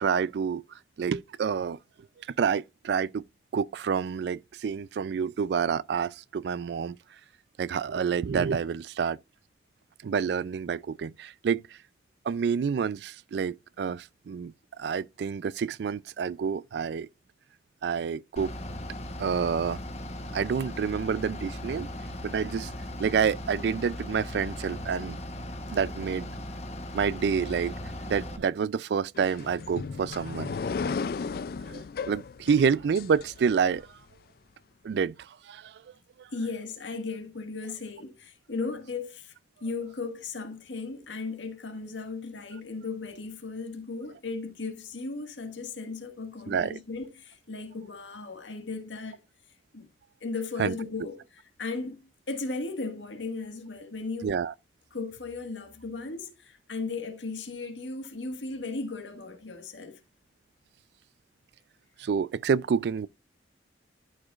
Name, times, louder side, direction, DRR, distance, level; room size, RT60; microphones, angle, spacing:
voice 1, 0.0-1.8 2.2-3.2 3.5-7.0 7.6-9.2 10.0-11.8 12.2-17.1 17.8-18.5 19.2-19.8 20.3-21.9 22.2-22.7 23.0-25.2 25.7-26.3 26.9-27.8 28.1-30.5 31.7-33.9 34.8-35.8 36.2-36.3 46.5-46.8 50.6-50.7 54.2-54.5 62.0-63.1, right 6 dB, 65° right, 0.3 m, -28 dB
Bus / Idling, 18.4-28.4, left 1 dB, 35° left, 1.0 m, -38 dB
sound 1, 29.1-33.8, left 5 dB, 55° left, 0.3 m, -35 dB
voice 2, 36.3-39.3 39.6-49.2 49.7-49.9 50.2-51.2 51.6-54.3 54.9-60.0, left 3 dB, 85° left, 1.6 m, -36 dB
12.5 x 5.0 x 2.4 m
head